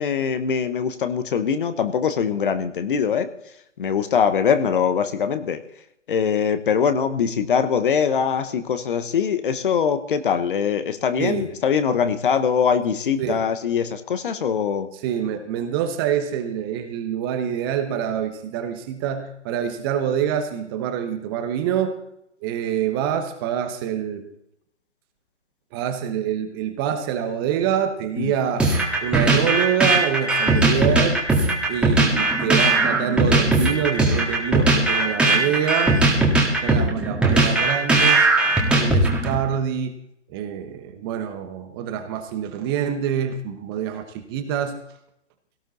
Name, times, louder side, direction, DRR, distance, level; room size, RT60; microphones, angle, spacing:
voice 1, 0.0-3.3 3.8-5.6 6.1-14.9 28.2-28.3 35.2-35.4, left 7 dB, 45° left, 10 dB, 1.2 m, -22 dB
voice 2, 11.2-11.5 13.2-13.4 14.9-22.0 22.4-24.3 25.7-28.7 29.0-31.2 31.7-35.9 36.6-39.9 40.3-44.8, right 9 dB, 20° right, 7 dB, 1.0 m, -26 dB
sound 1, 28.6-39.4, right 2 dB, 5° right, 1.8 m, -19 dB
17.5 x 14.0 x 4.1 m, 0.76 s
figure-of-eight pair, 140°, 36 cm